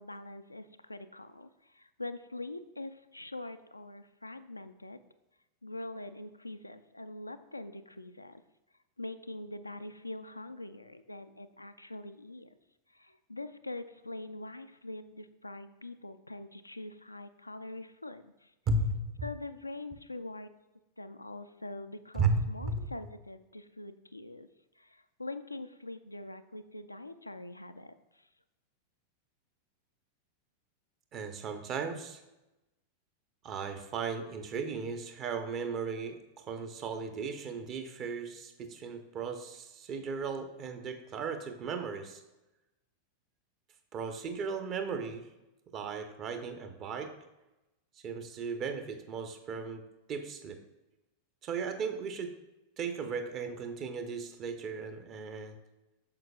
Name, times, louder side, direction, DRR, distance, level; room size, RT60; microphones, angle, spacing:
voice 1, 0.0-5.0 5.6-8.4 9.0-12.5 12.9-18.5 19.2-20.5 21.0-24.5 24.8-28.3, left 2 dB, 85° left, 10 dB, 0.3 m, -44 dB
voice 2, 18.7-19.0 22.1-22.9 31.1-32.2 33.4-36.2 36.5-42.2 43.9-45.3 45.7-47.1 48.0-49.8 50.1-50.6 51.4-52.3 52.8-55.6, right 4 dB, 35° right, 7 dB, 0.7 m, -35 dB
8.7 x 6.4 x 2.3 m, 0.99 s
figure-of-eight pair, 90°, 0 cm